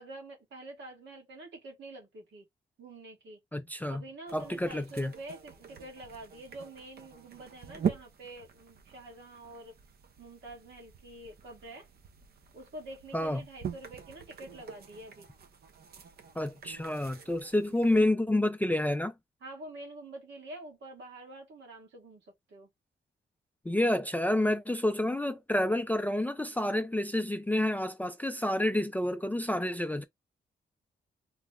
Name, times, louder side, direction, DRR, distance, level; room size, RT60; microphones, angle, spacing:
voice 1, 0.0-2.5 2.8-3.4 3.9-9.7 10.2-11.9 12.5-15.3 17.7-18.3 19.4-22.7, right 2 dB, 75° right, 1.4 m, -47 dB
voice 2, 3.5-4.0 4.3-5.1 13.1-13.4 16.4-19.1 23.7-30.0, left 1 dB, 10° left, 0.3 m, -29 dB
sound 1, 4.3-18.1, right 7 dB, 55° right, 0.6 m, -43 dB
3.1 x 2.1 x 3.5 m
wide cardioid pair, 125°, 19 cm